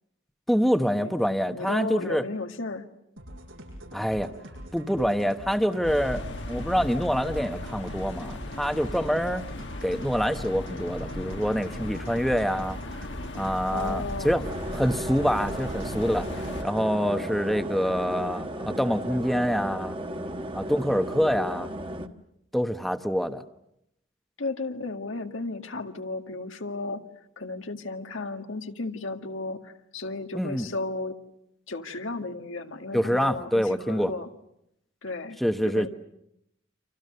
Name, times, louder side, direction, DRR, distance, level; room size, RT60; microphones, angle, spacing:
voice 1, 0.5-2.2 3.9-4.3 4.7-9.4 9.8-13.1 13.3-14.5 14.7-16.3 16.6-20.0 20.5-21.7 22.5-23.4 30.3-30.7 32.9-34.1 35.4-35.9, equal, ahead, 8 dB, 1.1 m, -26 dB
voice 2, 1.5-2.9 13.7-14.4 24.4-27.0 27.4-31.2 31.7-34.3 35.0-35.4 35.6-35.9, left 3 dB, 85° left, 5 dB, 2.0 m, -34 dB
sound 1, 3.2-16.9, equal, 90° right, 7.6 m, -44 dB
sound 2, 5.8-16.6, left 1 dB, 65° left, 1.5 m, -37 dB
sound 3, 14.4-22.1, right 1 dB, 25° right, 1.3 m, -35 dB
30.0 x 27.0 x 6.7 m, 0.80 s
head